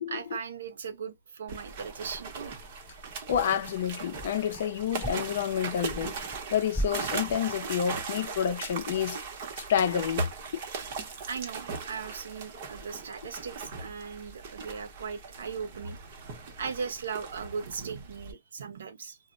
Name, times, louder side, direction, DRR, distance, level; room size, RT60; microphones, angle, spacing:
voice 1, 0.1-2.6 10.7-10.9 11.3-16.0 16.6-19.2, right 6 dB, 80° right, 0.7 m, -38 dB
sound 1, 1.5-18.3, right 4 dB, 40° right, 0.8 m, -39 dB
sound 2, 2.6-2.9 3.3-4.7 5.0-6.4 6.7-7.7, right 1 dB, 5° left, 0.4 m, -38 dB
voice 2, 3.3-6.1 6.5-9.2 9.6-10.6, left 9 dB, 55° left, 0.5 m, -29 dB
2.1 x 2.0 x 3.7 m
hypercardioid pair, 170°, 0 cm